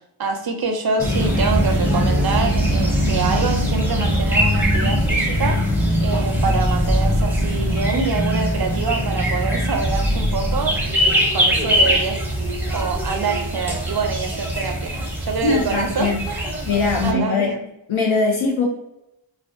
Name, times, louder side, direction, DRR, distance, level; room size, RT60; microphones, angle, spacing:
voice 1, 0.2-5.6 6.0-12.2 12.7-14.9 15.2-16.6 17.0-17.7, right 4 dB, 50° right, 4 dB, 0.5 m, -25 dB
sound 1, 1.0-17.1, equal, 5° right, 0.5 m, -21 dB
sound 2, 5.3-5.5 6.3-8.0 8.3-8.4 9.8-10.9, equal, 30° left, 1.1 m, -25 dB
voice 2, 15.4-16.2 16.7-17.5 17.9-18.7, left 4 dB, 75° left, -1 dB, 0.6 m, -21 dB
2.4 x 2.1 x 2.5 m, 0.85 s
wide cardioid pair, 60°, 48 cm